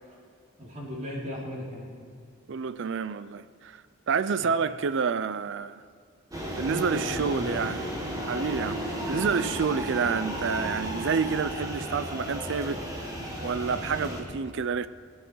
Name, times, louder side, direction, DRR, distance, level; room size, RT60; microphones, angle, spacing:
voice 1, 0.6-1.9 4.4-4.5 6.7-7.6, equal, 35° right, 3.3 m, -36 dB
voice 2, 2.5-5.8 6.6-7.8 8.2-12.9 13.4-14.9, right 5 dB, 55° right, 0.4 m, -29 dB
sound 1, 6.3-14.2, equal, 15° right, 1.8 m, -34 dB
20.5 x 10.5 x 4.7 m
head